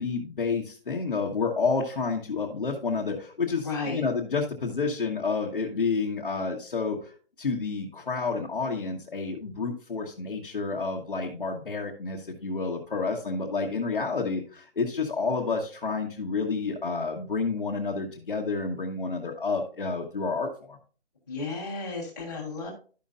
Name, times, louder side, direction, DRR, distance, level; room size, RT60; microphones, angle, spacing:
voice 1, 0.0-7.1 7.4-20.8, left 4 dB, 45° left, -2 dB, 1.4 m, -29 dB
voice 2, 3.6-4.1 21.3-22.7, left 3 dB, 15° left, -6 dB, 1.5 m, -33 dB
12.5 x 5.5 x 2.6 m, 0.40 s
hypercardioid pair, 175°, 35 cm